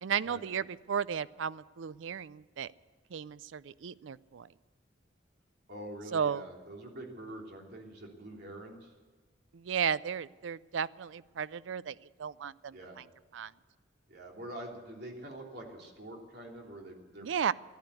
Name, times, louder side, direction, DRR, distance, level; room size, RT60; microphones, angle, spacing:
voice 1, 0.0-2.7 3.1-4.5 6.1-6.5 9.5-13.0 13.3-13.5 17.2-17.5, right 7 dB, 75° right, 18 dB, 0.4 m, -34 dB
voice 2, 5.7-8.9 12.7-13.0 14.1-17.3, right 1 dB, 60° right, 0 dB, 3.1 m, -45 dB
14.0 x 11.5 x 8.2 m, 1.4 s
head